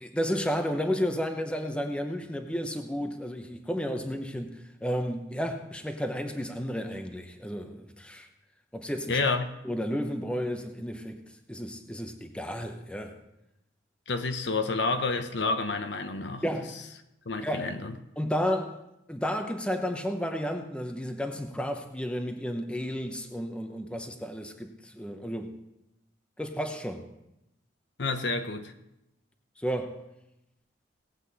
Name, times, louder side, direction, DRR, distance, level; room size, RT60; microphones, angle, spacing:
voice 1, 0.0-8.3 8.7-9.2 9.6-11.2 11.5-13.2 16.4-16.7 17.4-17.7 18.2-18.8 19.1-25.5 26.4-27.1 29.6-30.0, equal, 5° left, 5 dB, 0.8 m, -32 dB
voice 2, 9.1-9.5 14.1-16.4 17.3-17.9 28.0-28.7, left 3 dB, 70° left, 7 dB, 1.0 m, -29 dB
18.0 x 8.2 x 4.1 m, 0.88 s
head